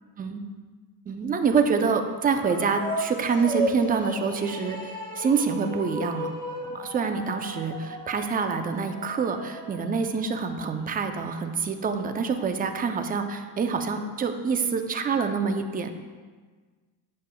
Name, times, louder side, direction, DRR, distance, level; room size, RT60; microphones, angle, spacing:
voice 1, 1.1-4.9 5.2-6.3 6.6-15.9, right 5 dB, 20° right, 7 dB, 0.5 m, -26 dB
sound 1, 2.3-10.8, equal, 10° left, 1.7 m, -35 dB
8.1 x 7.5 x 2.2 m, 1.4 s
cardioid pair, 105°, 43 cm